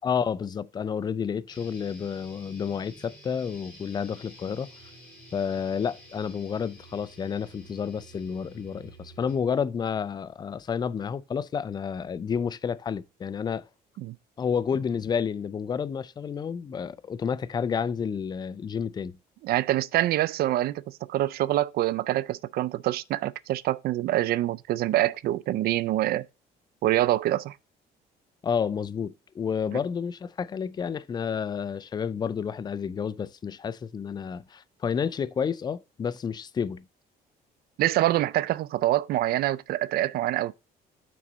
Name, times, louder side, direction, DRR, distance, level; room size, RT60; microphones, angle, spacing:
voice 1, 0.0-4.7 5.3-13.7 14.4-19.2 28.4-36.9, left 7 dB, 25° left, 0.4 m, -30 dB
sound 1, 1.5-9.5, right 1 dB, 10° left, 3.1 m, -50 dB
voice 2, 19.4-20.8 21.1-26.3 26.8-27.6 37.8-40.5, right 14 dB, 65° right, 0.4 m, -25 dB
6.1 x 3.9 x 6.1 m
cardioid pair, 110°, 17 cm